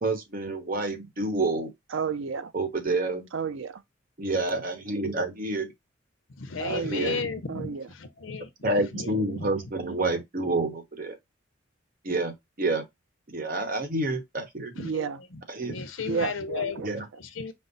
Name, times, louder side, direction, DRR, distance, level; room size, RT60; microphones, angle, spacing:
voice 1, 0.0-1.7 2.5-3.3 4.2-5.7 6.7-7.2 8.6-11.2 12.0-12.8 13.3-14.7 15.5-15.7 16.8-17.1, right 2 dB, 45° right, 1.0 m, -28 dB
voice 2, 1.9-2.5 3.3-3.8 6.6-7.2 7.5-7.8 14.8-15.2 16.1-16.9, right 5 dB, 70° right, 0.5 m, -31 dB
voice 3, 6.4-8.5 8.9-9.5 14.8-15.4 15.7-16.8 17.2-17.5, left 4 dB, 80° left, 0.8 m, -34 dB
5.3 x 2.1 x 3.9 m
head